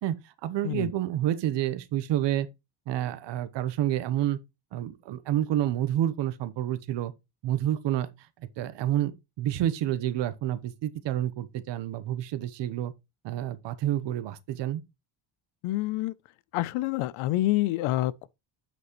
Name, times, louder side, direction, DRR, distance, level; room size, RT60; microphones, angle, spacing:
voice 1, 0.0-2.5 2.9-4.4 4.7-7.1 7.4-8.1 8.6-12.9 13.2-14.8, right 12 dB, 60° right, 1.0 m, -29 dB
voice 2, 15.6-16.1 16.5-18.3, left 16 dB, 85° left, 0.7 m, -27 dB
8.2 x 6.1 x 3.1 m
cardioid pair, 125°, 48 cm